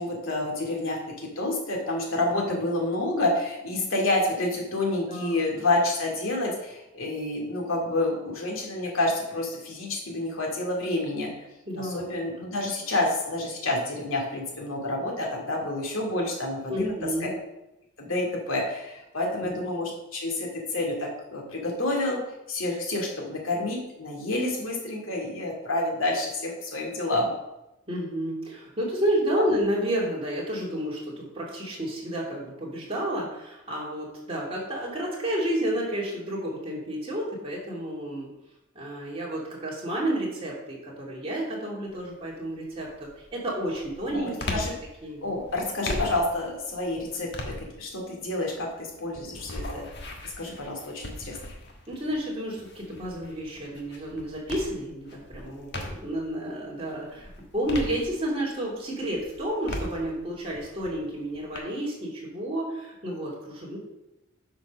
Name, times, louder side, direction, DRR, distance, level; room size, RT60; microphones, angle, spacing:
voice 1, 0.0-11.5 11.8-16.9 18.0-22.2 22.5-27.3 29.4-29.5 44.1-44.7 45.2-49.9 50.2-51.4, left 2 dB, 80° left, -1 dB, 2.5 m, -29 dB
voice 2, 5.1-5.4 11.7-12.0 12.3-12.5 16.7-17.3 19.4-19.6 27.9-38.3 38.7-44.6 45.0-45.3 47.2-47.3 51.9-63.8, right 1 dB, 25° right, -4 dB, 2.7 m, -31 dB
sound 1, 41.9-42.3 42.8-56.3 56.7-58.6 59.0-61.6, left 1 dB, 50° left, 1.4 m, -39 dB
8.8 x 5.2 x 6.3 m, 0.94 s
head